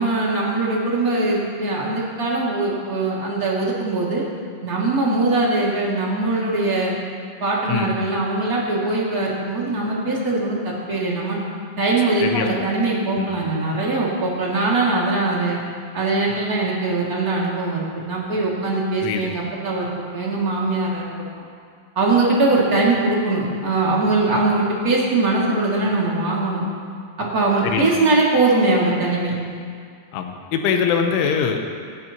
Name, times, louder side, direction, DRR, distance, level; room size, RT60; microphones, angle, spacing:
voice 1, 0.0-4.2 4.6-6.9 7.4-11.4 11.8-15.6 15.9-21.1 21.3-21.5 22.0-26.7 27.2-29.4, right 2 dB, 30° right, -5 dB, 1.6 m, -21 dB
voice 2, 19.0-19.3 27.6-27.9 30.1-31.6, left 7 dB, 85° left, 4 dB, 3.4 m, -22 dB
27.5 x 10.5 x 3.0 m, 2.2 s
omnidirectional pair, 5.4 m